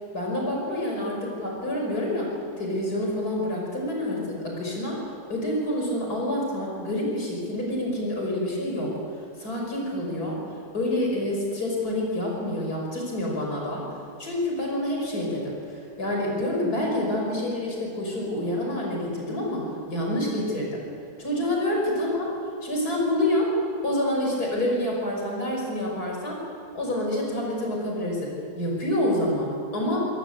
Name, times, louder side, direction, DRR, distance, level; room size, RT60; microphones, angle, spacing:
voice 1, 0.1-2.3 2.6-5.0 5.3-8.9 9.4-10.4 10.7-13.8 14.2-19.6 19.9-20.8 21.2-22.4 22.6-23.5 23.8-26.4 26.7-30.1, left 1 dB, 85° left, -1 dB, 6.2 m, -27 dB
26.5 x 18.0 x 8.1 m, 2.5 s
omnidirectional pair, 1.6 m